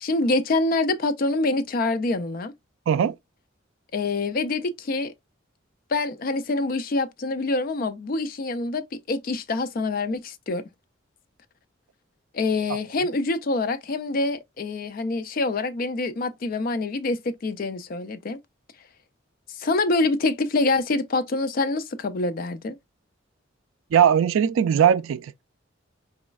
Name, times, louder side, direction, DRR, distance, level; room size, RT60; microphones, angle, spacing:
voice 1, 0.0-2.5 3.9-5.1 5.9-10.6 12.3-18.4 19.5-22.8, left 3 dB, 45° left, 0.4 m, -26 dB
voice 2, 23.9-25.4, right 8 dB, 85° right, 0.3 m, -19 dB
4.1 x 3.1 x 2.3 m
head